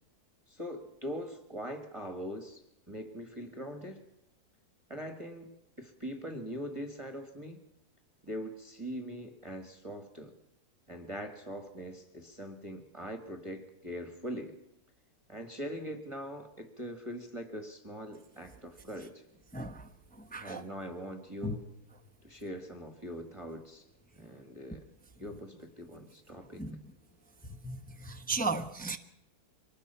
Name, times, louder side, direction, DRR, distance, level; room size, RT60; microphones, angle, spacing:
voice 1, 0.5-2.6 2.9-4.0 4.9-7.6 8.2-10.3 10.9-14.6 15.3-19.2 20.4-21.7 22.2-23.8 24.1-24.9 25.2-26.7, equal, 20° right, 1.8 m, -42 dB
voice 2, 19.5-19.9 20.2-20.6 21.4-21.6 26.6-26.7 27.4-29.0, right 3 dB, 5° left, 0.9 m, -35 dB
24.5 x 20.0 x 5.7 m
omnidirectional pair, 1.6 m